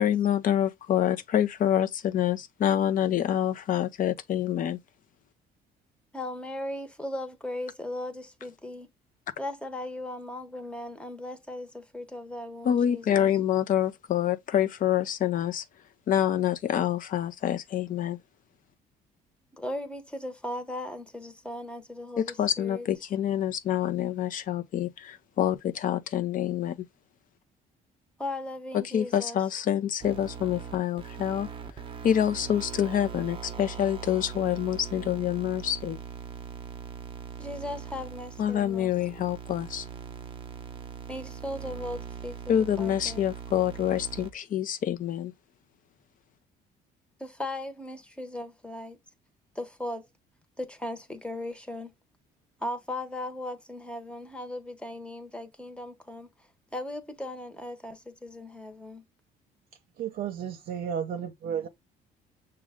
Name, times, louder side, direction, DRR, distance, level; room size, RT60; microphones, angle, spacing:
voice 1, 0.0-4.8 12.6-15.6 16.1-18.2 22.2-26.9 28.7-31.5 32.0-36.0 38.4-39.9 42.5-45.3, left 10 dB, 55° left, 0.6 m, -27 dB
voice 2, 6.1-8.9 9.4-13.3 19.5-22.9 28.2-29.4 37.4-38.9 41.1-43.2 47.2-49.0 49.5-50.1 50.6-51.9 52.6-56.3 56.7-59.0, left 1 dB, 5° left, 1.0 m, -37 dB
sound 1, 30.0-44.3, right 7 dB, 30° right, 0.7 m, -41 dB
voice 3, 60.0-61.7, right 8 dB, 65° right, 0.7 m, -33 dB
6.2 x 2.3 x 3.5 m
cardioid pair, 110°, 17 cm